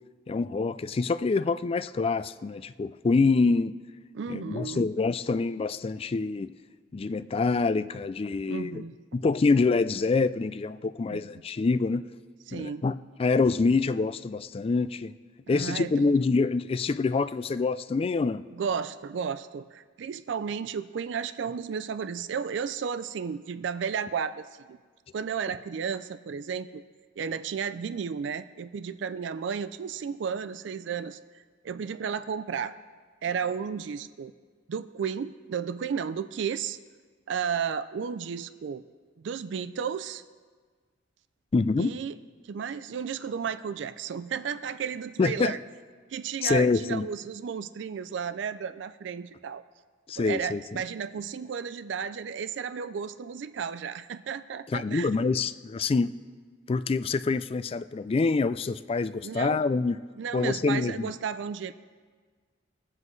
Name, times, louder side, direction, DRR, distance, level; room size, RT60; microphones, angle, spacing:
voice 1, 0.3-3.8 4.3-6.5 6.9-8.8 9.1-12.0 12.5-15.1 15.5-18.4 41.5-41.9 45.2-45.5 46.4-47.1 50.1-50.6 54.7-56.1 56.7-60.0 60.3-61.1, left 4 dB, 30° left, 13 dB, 0.3 m, -26 dB
voice 2, 4.1-4.9 8.5-9.0 11.1-11.2 12.5-12.8 15.5-16.2 18.5-24.8 25.1-26.8 27.2-31.2 31.6-32.7 33.2-34.3 34.7-36.8 37.3-38.8 39.2-40.2 41.8-42.2 42.4-45.6 46.1-49.6 50.1-55.2 59.2-59.6 60.2-61.7, right 6 dB, 65° right, 13 dB, 0.4 m, -33 dB
22.0 x 7.6 x 3.2 m, 1.5 s
head